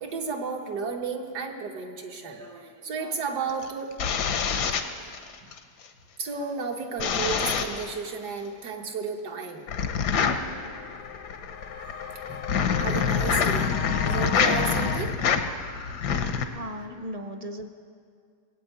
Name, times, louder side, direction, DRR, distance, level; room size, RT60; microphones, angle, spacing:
voice 1, 0.0-3.9 5.0-5.5 6.2-9.7 11.7-13.7 14.0-15.1, right 5 dB, 80° right, 2 dB, 1.9 m, -33 dB
sound 1, 3.5-5.6 7.0-7.9 9.7-16.5, left 6 dB, 90° left, 1.5 m, -26 dB
sound 2, 9.2-9.3 9.6-15.0, left 7 dB, 65° left, 0.7 m, -38 dB
voice 2, 16.5-17.7, equal, 40° right, 6 dB, 0.5 m, -37 dB
19.5 x 8.1 x 9.1 m, 2.2 s
omnidirectional pair, 1.7 m